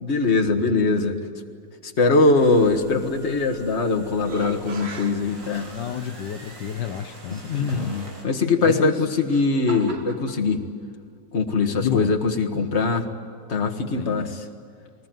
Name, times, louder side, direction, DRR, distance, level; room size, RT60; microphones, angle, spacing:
voice 1, 0.0-1.2 1.8-5.7 7.3-10.6 11.3-13.1 13.5-14.5, left 3 dB, 40° left, 4 dB, 1.9 m, -22 dB
sound 1, 2.3-8.2, right 1 dB, 75° right, 5.8 m, -45 dB
sound 2, 3.4-3.8 4.2-6.1 6.8-6.9 8.7-10.4, right 4 dB, 40° right, 1.5 m, -38 dB
voice 2, 5.7-7.9 8.6-8.9 11.8-12.1 14.0-14.3, left 9 dB, 70° left, 7 dB, 1.5 m, -29 dB
22.0 x 20.0 x 9.2 m, 2.3 s
omnidirectional pair, 2.0 m